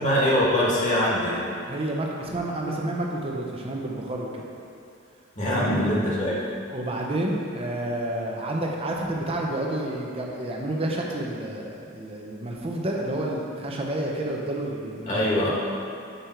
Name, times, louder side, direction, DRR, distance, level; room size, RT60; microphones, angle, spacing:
voice 1, 0.0-1.4 5.3-6.4 15.1-15.5, equal, 40° left, -6 dB, 1.6 m, -23 dB
voice 2, 1.7-4.4 5.4-5.7 6.7-15.5, right 1 dB, 30° right, -1 dB, 0.8 m, -30 dB
6.8 x 5.2 x 4.5 m, 2.5 s
head